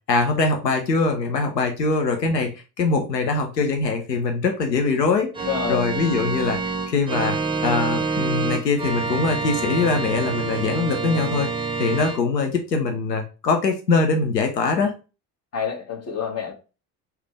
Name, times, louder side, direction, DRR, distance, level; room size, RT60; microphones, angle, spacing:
voice 1, 0.1-2.5 2.8-6.6 6.9-7.4 7.6-11.5 11.8-14.9, left 4 dB, 85° left, 3 dB, 0.7 m, -22 dB
Organ, 5.3-12.2, right 4 dB, 10° right, 0.8 m, -27 dB
voice 2, 5.4-5.8 15.5-16.5, left 7 dB, 30° left, 3 dB, 1.4 m, -27 dB
4.6 x 3.3 x 3.3 m, 0.32 s
figure-of-eight pair, 60°, 48 cm